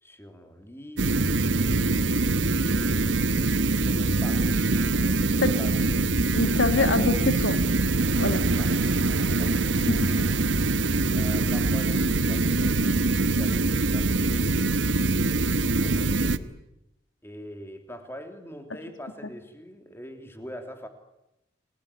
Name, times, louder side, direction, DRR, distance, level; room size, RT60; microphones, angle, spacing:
voice 1, 0.0-1.3 2.0-3.4 3.7-6.1 8.3-9.0 9.4-9.6 9.9-10.4 11.1-14.5 15.8-16.5 17.2-20.9, equal, 10° left, 5 dB, 3.3 m, -43 dB
sound 1, 1.0-16.4, right 2 dB, 75° right, 1.2 m, -24 dB
voice 2, 6.3-7.6 8.2-8.4 9.9-10.0, left 2 dB, 80° left, 8 dB, 1.9 m, -24 dB
29.5 x 20.0 x 9.9 m, 0.89 s
head